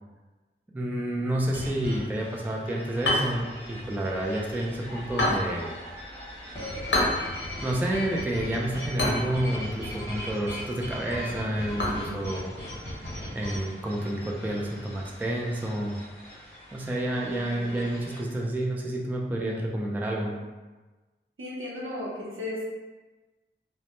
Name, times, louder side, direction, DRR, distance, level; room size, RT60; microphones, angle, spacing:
voice 1, 0.7-5.7 7.6-12.5 13.3-16.0 16.7-20.4, right 1 dB, 10° right, -1 dB, 0.3 m, -29 dB
sound 1, 1.5-18.2, left 1 dB, 30° left, 1.1 m, -40 dB
sound 2, 3.0-13.1, left 1 dB, 60° left, 0.6 m, -33 dB
voice 2, 11.8-12.2 17.4-17.7 21.4-22.7, left 1 dB, 75° right, -6 dB, 0.7 m, -36 dB
2.1 x 2.0 x 2.9 m, 1.2 s
wide cardioid pair, 55°, 21 cm